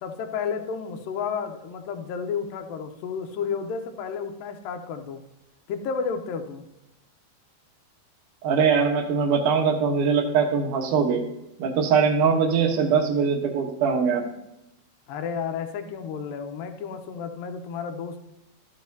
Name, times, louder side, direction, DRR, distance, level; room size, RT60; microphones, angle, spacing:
voice 1, 0.0-5.2 5.7-6.7 15.1-18.2, left 6 dB, 85° left, 5 dB, 2.0 m, -32 dB
voice 2, 8.4-11.2 11.6-14.2, right 6 dB, 70° right, 3 dB, 1.9 m, -22 dB
14.0 x 7.2 x 2.7 m, 0.91 s
omnidirectional pair, 5.1 m